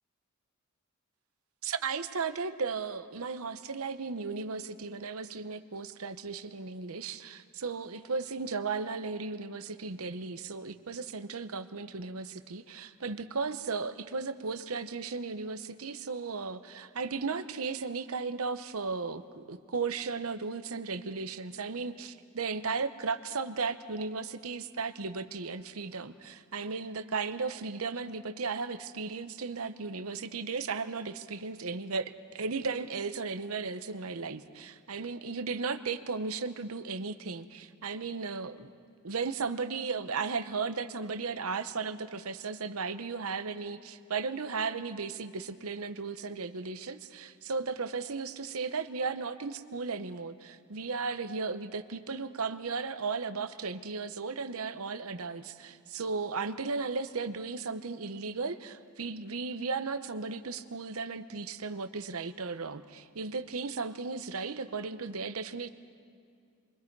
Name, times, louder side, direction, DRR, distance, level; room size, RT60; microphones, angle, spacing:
voice 1, 1.6-38.7 39.0-65.7, right 4 dB, 80° right, 10 dB, 0.9 m, -35 dB
29.0 x 24.0 x 4.7 m, 2.3 s
head